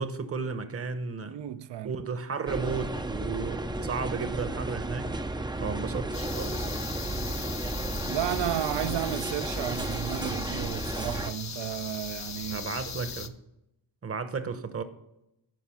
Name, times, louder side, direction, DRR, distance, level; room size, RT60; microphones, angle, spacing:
voice 1, 0.0-1.4 1.8-5.1 5.6-6.9 12.5-13.4 14.0-14.8, right 5 dB, 30° right, 0.9 m, -34 dB
voice 2, 1.3-1.9 5.6-5.8 8.1-13.1, right 12 dB, 65° right, 0.6 m, -33 dB
sound 1, 2.5-11.3, right 2 dB, 10° right, 0.4 m, -33 dB
sound 2, 6.1-13.3, left 6 dB, 40° left, 0.7 m, -39 dB
11.0 x 4.7 x 6.1 m
cardioid pair, 65°, 46 cm